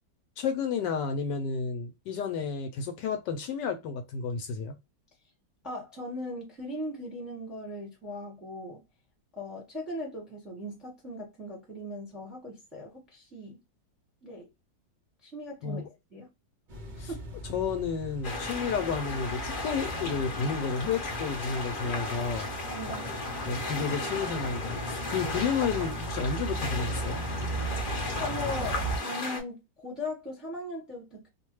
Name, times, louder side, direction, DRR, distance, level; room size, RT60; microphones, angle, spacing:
voice 1, 0.4-4.8 15.6-15.9 17.0-17.1 17.4-22.5 23.4-27.2, left 5 dB, 75° left, 1.1 m, -31 dB
voice 2, 5.6-8.8 9.4-13.6 14.2-14.5 15.2-15.8 16.1-16.3 17.1-17.2 22.7-23.1 28.2-31.3, left 1 dB, ahead, 0.9 m, -39 dB
sound 1, 16.7-29.0, right 2 dB, 65° right, 0.4 m, -38 dB
sound 2, 18.2-29.4, left 2 dB, 40° left, 0.7 m, -35 dB
2.9 x 2.2 x 3.0 m
omnidirectional pair, 2.0 m